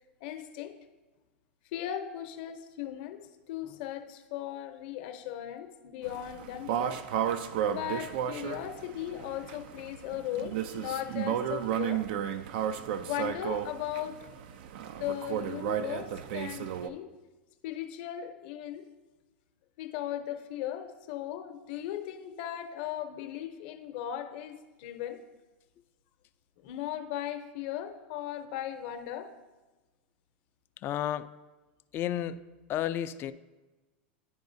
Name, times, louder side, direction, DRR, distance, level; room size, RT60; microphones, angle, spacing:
voice 1, 0.2-0.7 1.7-7.0 7.7-12.1 13.0-14.3 15.0-17.1 17.6-18.9 19.8-25.2 26.6-29.3, left 11 dB, 60° left, 7 dB, 0.7 m, -37 dB
sound 1, 6.0-16.9, right 9 dB, 65° right, 0.4 m, -33 dB
voice 2, 30.8-31.3 31.9-32.4 32.7-33.3, left 11 dB, 40° left, 13 dB, 0.3 m, -31 dB
10.0 x 4.8 x 2.6 m, 1.2 s
hypercardioid pair, 105°, 6 cm